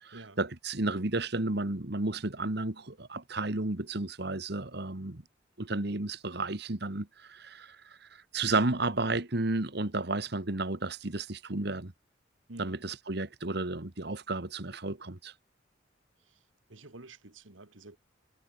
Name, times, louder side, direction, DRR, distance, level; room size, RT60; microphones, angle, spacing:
voice 1, 0.0-5.2 5.6-11.9 12.6-15.3, right 2 dB, 60° right, 1.7 m, -32 dB
voice 2, 12.5-12.8 16.3-16.4 16.7-18.0, right 2 dB, 90° right, 2.2 m, -49 dB
head